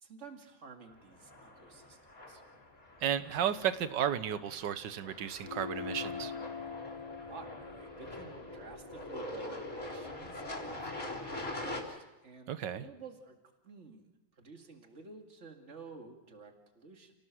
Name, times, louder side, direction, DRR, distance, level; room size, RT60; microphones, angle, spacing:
voice 1, 0.0-2.4 7.1-13.4 13.6-14.1 14.4-17.1, right 4 dB, 40° right, 4 dB, 2.4 m, -52 dB
sound 1, 1.1-11.8, left 1 dB, 50° left, 4.1 m, -44 dB
voice 2, 3.0-6.3 12.5-12.8, right 9 dB, 80° right, 13 dB, 1.7 m, -33 dB
sound 2, 5.4-10.2, left 6 dB, 35° left, 0.6 m, -44 dB
30.0 x 17.5 x 6.3 m, 1.0 s
omnidirectional pair, 1.9 m